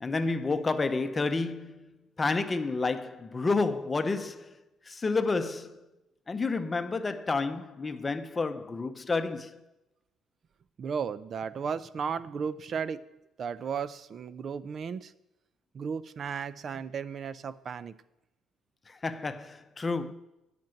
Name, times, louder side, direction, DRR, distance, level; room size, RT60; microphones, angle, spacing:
voice 1, 0.0-5.9 6.3-9.6 18.9-20.1, left 3 dB, 20° left, 0.7 m, -30 dB
voice 2, 10.8-13.1 13.4-15.1 15.7-18.0, right 6 dB, 45° right, 0.5 m, -34 dB
10.5 x 6.0 x 9.0 m
cardioid pair, 130°, 0 cm